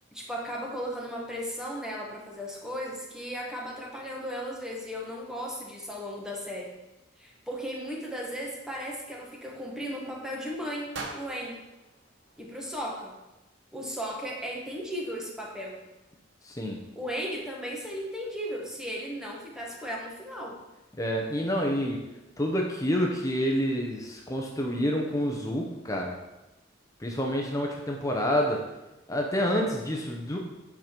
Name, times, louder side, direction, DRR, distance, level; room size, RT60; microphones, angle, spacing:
voice 1, 0.1-6.7 7.2-11.6 12.4-13.1 13.7-15.8 16.9-20.6, equal, 5° right, -2 dB, 1.4 m, -36 dB
sound 1, 10.9-13.1, right 3 dB, 70° right, 1.0 m, -43 dB
voice 2, 16.4-16.8 21.0-22.0 22.4-26.1 27.0-28.6 29.1-30.4, equal, 20° left, 1 dB, 0.8 m, -28 dB
8.2 x 5.0 x 4.5 m, 1.0 s
head